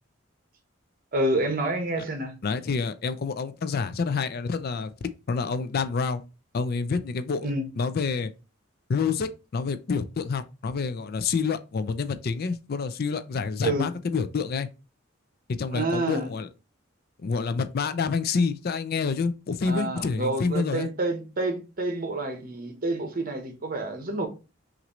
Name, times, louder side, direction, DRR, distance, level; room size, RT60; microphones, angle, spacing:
voice 1, 1.1-2.3 7.4-7.7 13.6-13.9 15.7-16.3 19.6-24.3, right 2 dB, 45° right, 1.0 m, -28 dB
voice 2, 2.4-4.9 5.3-6.2 6.5-8.3 8.9-14.7 15.6-16.5 17.2-20.9, left 5 dB, 50° left, 0.4 m, -28 dB
5.9 x 2.6 x 3.0 m
head